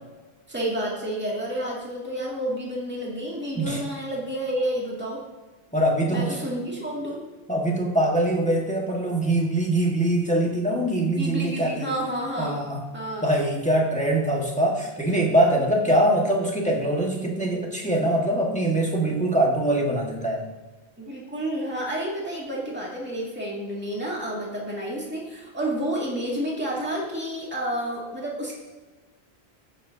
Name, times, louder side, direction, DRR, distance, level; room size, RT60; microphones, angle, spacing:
voice 1, 0.5-5.2 6.1-7.2 11.1-12.6 12.9-13.3 21.0-28.5, right 1 dB, 10° right, -4 dB, 2.2 m, -30 dB
voice 2, 5.7-6.3 7.5-11.9 12.4-12.8 13.2-20.4, right 1 dB, 5° left, -2 dB, 1.5 m, -23 dB
16.0 x 7.4 x 2.7 m, 1.3 s
omnidirectional pair, 1.1 m